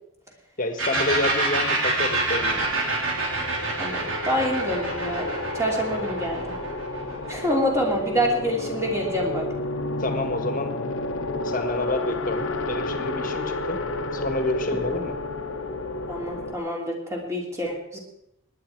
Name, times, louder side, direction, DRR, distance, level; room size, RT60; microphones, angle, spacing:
voice 1, 0.6-2.6 10.0-10.7 11.4-13.8 14.1-15.2, left 2 dB, 40° left, 7 dB, 1.5 m, -28 dB
sound 1, 0.8-8.3, right 2 dB, 65° right, 3.6 m, -27 dB
sound 2, 2.4-16.5, left 2 dB, 65° left, 1.1 m, -31 dB
voice 2, 3.8-5.3 5.5-6.5 7.3-9.4 14.7-14.8 16.1-18.0, equal, 15° right, -1 dB, 3.0 m, -26 dB
18.5 x 10.5 x 4.6 m, 0.82 s
head